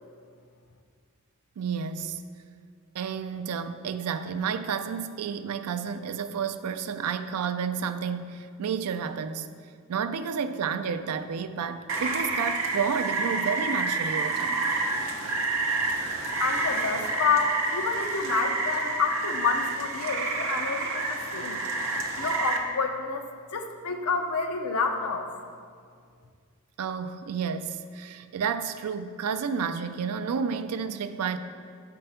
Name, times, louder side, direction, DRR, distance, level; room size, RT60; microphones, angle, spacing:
voice 1, 1.6-2.2 2.9-9.5 9.9-14.7 26.8-31.4, right 6 dB, 90° right, 0.4 m, -31 dB
Rain, 11.9-22.6, right 3 dB, 60° right, 0.7 m, -29 dB
voice 2, 16.4-21.6 22.2-23.2 23.5-25.3, left 5 dB, 85° left, 0.7 m, -28 dB
6.6 x 4.6 x 5.5 m
head